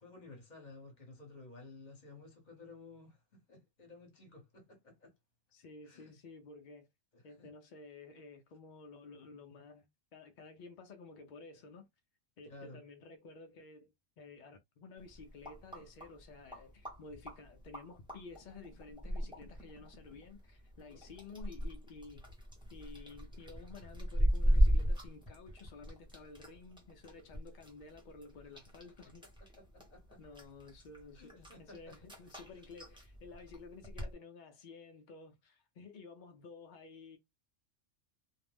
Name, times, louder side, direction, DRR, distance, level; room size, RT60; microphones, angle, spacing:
voice 1, 0.0-3.2 3.5-5.1 5.9-6.2 7.1-7.5 12.4-12.8 29.7-30.2 31.1-31.9, left 3 dB, 40° left, 0.9 m, -54 dB
voice 2, 5.5-6.9 7.2-11.9 12.4-22.2 22.7-29.3 30.2-37.2, left 4 dB, 70° left, 0.4 m, -53 dB
sound 1, 15.0-34.1, equal, 5° right, 0.7 m, -37 dB
2.5 x 2.0 x 3.3 m
omnidirectional pair, 1.3 m